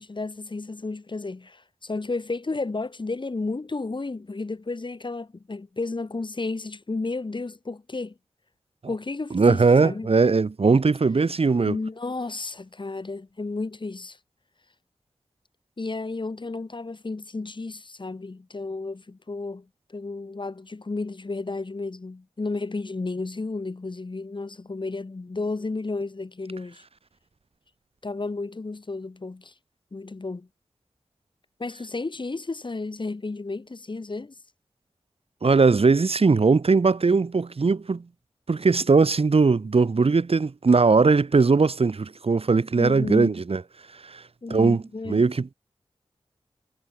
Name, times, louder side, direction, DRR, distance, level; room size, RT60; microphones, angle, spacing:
voice 1, 0.0-8.1 8.9-10.1 11.6-14.2 15.8-19.7 19.9-26.8 28.0-29.5 29.9-30.5 31.6-34.3 42.8-43.3 44.4-45.2, left 3 dB, 50° left, 3.7 m, -32 dB
voice 2, 9.3-11.8 35.4-38.0 38.5-43.6 44.0-44.2 44.5-45.5, right 4 dB, 65° right, 3.4 m, -20 dB
cardioid pair, 50°, 11 cm